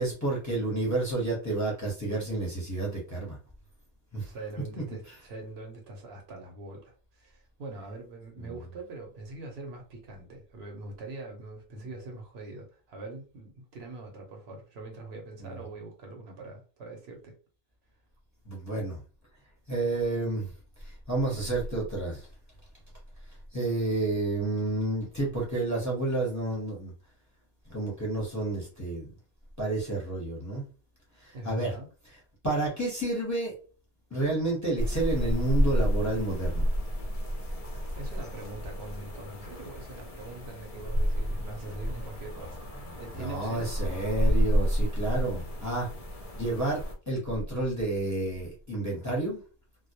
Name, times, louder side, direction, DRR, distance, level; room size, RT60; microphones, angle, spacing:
voice 1, 0.0-3.4 4.1-4.3 4.8-4.9 8.4-8.6 15.4-15.6 18.5-19.0 19.7-20.5 20.8-22.3 23.5-26.9 27.7-29.1 29.6-30.6 31.2-31.7 32.4-33.5 34.1-36.7 43.1-45.9 46.3-49.4, right 2 dB, 15° left, 0.7 m, -30 dB
voice 2, 4.2-17.3 31.3-31.9 37.9-43.8, right 2 dB, 70° right, 0.8 m, -43 dB
sound 1, 34.8-46.9, equal, 50° left, 0.4 m, -30 dB
2.2 x 2.0 x 2.8 m
omnidirectional pair, 1.2 m